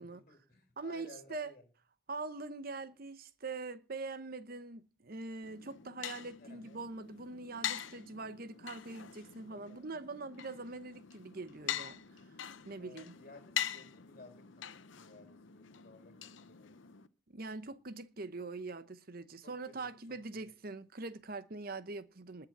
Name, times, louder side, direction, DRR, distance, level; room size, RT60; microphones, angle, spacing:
voice 1, 0.0-1.7 6.3-6.8 8.1-8.2 9.5-9.9 12.8-14.7 15.0-16.1 16.4-16.8 19.4-19.8 20.3-20.4, left 3 dB, 40° left, 3.2 m, -56 dB
voice 2, 0.8-1.5 2.1-12.0 12.6-13.1 17.3-22.5, right 3 dB, 45° right, 0.8 m, -43 dB
sound 1, 5.4-17.1, left 10 dB, 65° left, 0.8 m, -44 dB
20.0 x 6.8 x 6.0 m
head